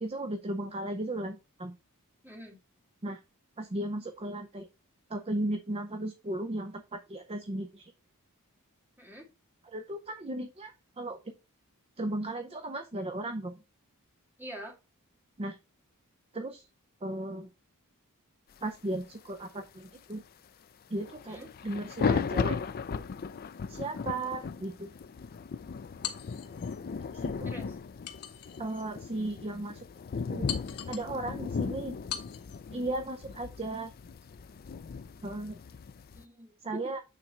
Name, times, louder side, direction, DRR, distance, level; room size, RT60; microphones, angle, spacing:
voice 1, 0.0-1.7 3.0-3.2 3.6-4.7 5.1-7.9 9.6-11.3 12.0-13.5 15.4-15.6 16.3-16.7 17.0-17.5 18.6-20.2 20.9-22.6 23.7-24.9 27.1-27.5 28.6-29.9 30.3-30.5 30.9-32.0 32.7-33.9 35.2-35.6 36.6-37.0, right 1 dB, 25° right, 7 dB, 0.6 m, -36 dB
voice 2, 2.2-2.6 9.0-9.3 14.4-14.8 21.3-21.5 27.4-27.8 36.1-36.8, equal, 10° right, 0 dB, 2.2 m, -45 dB
sound 1, 21.0-36.2, left 5 dB, 45° left, 0.4 m, -36 dB
sound 2, 26.0-26.8 28.1-28.9 29.4-29.5 30.5-31.1 32.1-32.6, left 9 dB, 80° left, 1.4 m, -40 dB
9.0 x 3.8 x 4.3 m, 0.28 s
head